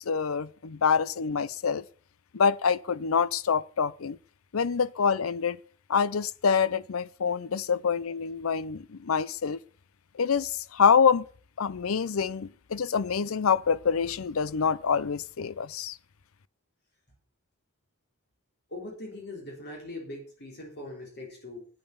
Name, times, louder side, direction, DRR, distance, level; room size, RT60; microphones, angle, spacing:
voice 1, 0.0-1.8 2.3-4.2 4.5-5.6 5.9-9.6 10.2-11.2 11.6-16.0, left 6 dB, 90° left, 0.6 m, -26 dB
voice 2, 18.7-21.7, left 2 dB, 55° left, 3.7 m, -41 dB
9.3 x 8.7 x 6.9 m
head